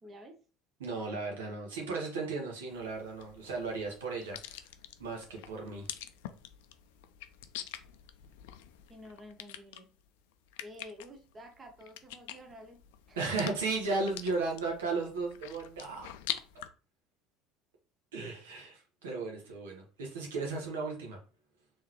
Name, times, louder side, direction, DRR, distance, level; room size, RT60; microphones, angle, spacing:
voice 1, 0.0-0.4 8.9-9.9 10.6-12.8 13.1-13.4, equal, 30° right, 4 dB, 1.0 m, -50 dB
voice 2, 0.8-4.7 5.0-5.9 13.2-16.1 18.1-21.2, right 3 dB, 80° right, 0 dB, 1.1 m, -35 dB
sound 1, 2.7-16.7, left 12 dB, 70° left, 0.4 m, -46 dB
3.7 x 3.1 x 3.0 m, 0.36 s
hypercardioid pair, 65°, 0 cm